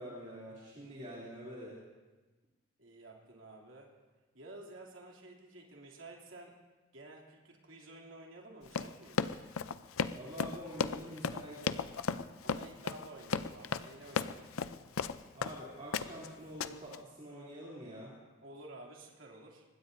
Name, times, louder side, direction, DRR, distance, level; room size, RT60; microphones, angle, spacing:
voice 1, 0.0-1.8 10.1-11.8 15.3-18.1, equal, 35° right, -7 dB, 3.2 m, -46 dB
voice 2, 2.8-3.9 4.3-6.6 6.9-9.2 12.4-14.5 18.4-19.6, right 2 dB, 65° right, -1 dB, 2.9 m, -52 dB
Run, 8.7-15.6 15.9-16.3 16.6-17.0, left 5 dB, 80° left, 0.5 m, -35 dB
25.0 x 20.5 x 2.7 m, 1.2 s
head